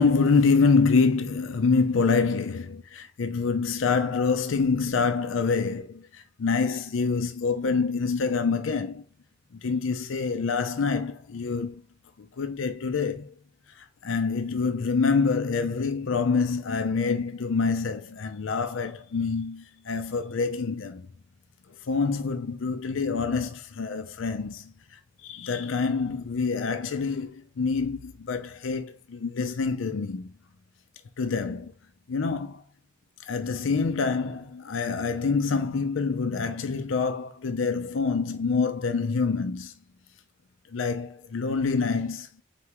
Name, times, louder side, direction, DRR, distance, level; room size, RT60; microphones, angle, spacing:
voice 1, 0.0-9.0 9.5-11.8 12.2-13.3 13.8-21.1 21.9-24.7 25.2-30.3 31.2-31.7 32.1-32.6 33.3-39.7 40.7-42.3, left 4 dB, 90° left, 0.5 m, -26 dB
4.2 x 3.6 x 2.9 m
head